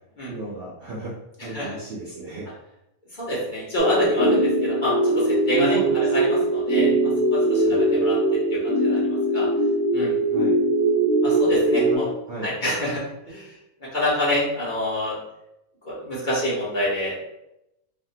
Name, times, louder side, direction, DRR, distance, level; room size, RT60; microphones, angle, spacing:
voice 1, 0.3-1.1 1.4-2.5 4.3-4.4 5.6-6.0 6.7-7.1 7.6-8.1 10.3-10.6 11.8-12.0 12.3-12.5, right 2 dB, 60° right, -5 dB, 0.6 m, -35 dB
voice 2, 1.4-1.7 3.2-6.9 7.3-9.5 9.9-10.2 11.2-12.1 12.4-15.2 15.8-17.2, equal, 40° left, -7 dB, 0.9 m, -27 dB
sound 1, 3.8-12.0, right 1 dB, 70° left, 1.3 m, -21 dB
3.4 x 2.0 x 2.7 m, 0.86 s
omnidirectional pair, 1.4 m